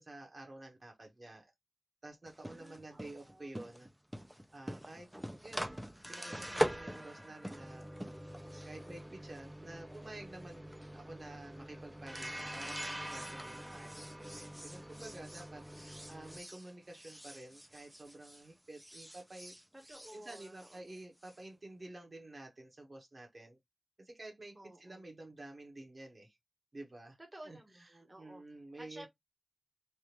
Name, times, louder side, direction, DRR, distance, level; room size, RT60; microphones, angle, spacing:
voice 1, 0.0-1.5 2.0-3.9 4.5-5.8 6.1-7.9 8.7-19.5 20.1-23.6 24.0-26.4 26.7-27.2 27.4-27.6 27.9-29.1, right 2 dB, 45° right, 1.1 m, -51 dB
sound 1, 2.3-18.5 18.7-21.3, equal, 5° right, 0.5 m, -43 dB
voice 2, 2.5-3.5 15.4-15.8 19.7-20.9 24.5-25.0 27.2-28.4 28.8-29.1, right 1 dB, 20° right, 1.0 m, -54 dB
3.4 x 2.5 x 2.9 m
wide cardioid pair, 95°, 0 cm